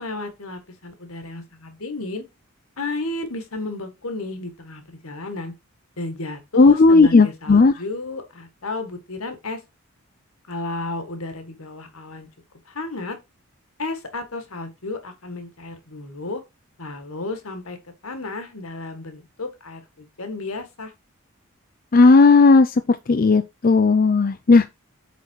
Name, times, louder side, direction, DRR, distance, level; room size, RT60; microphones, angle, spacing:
voice 1, 0.0-2.2 2.8-5.5 6.0-9.6 10.5-12.3 12.7-13.2 13.8-16.4 16.8-17.8 18.0-20.9, left 3 dB, 75° left, 1.7 m, -32 dB
voice 2, 6.6-7.7 21.9-22.7 23.1-24.6, left 3 dB, 40° left, 0.4 m, -14 dB
8.3 x 4.1 x 4.5 m
head